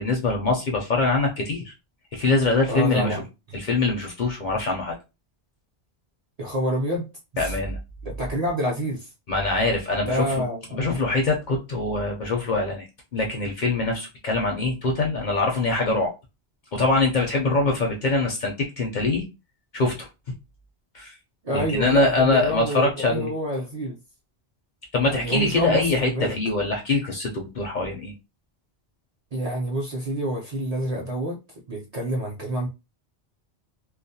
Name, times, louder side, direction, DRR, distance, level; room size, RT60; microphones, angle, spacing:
voice 1, 0.0-1.7 2.1-3.2 3.5-4.9 7.4-7.8 9.3-10.4 10.7-12.9 13.1-16.1 16.7-19.3 19.7-20.1 20.9-21.2 21.5-23.3 24.9-28.1, left 3 dB, 55° left, 0.5 m, -23 dB
voice 2, 2.7-3.2 6.4-7.5 8.0-9.1 10.0-11.1 21.4-24.0 25.0-26.3 29.3-31.4 31.7-32.7, equal, 50° right, 0.5 m, -28 dB
2.3 x 2.0 x 2.6 m
omnidirectional pair, 1.1 m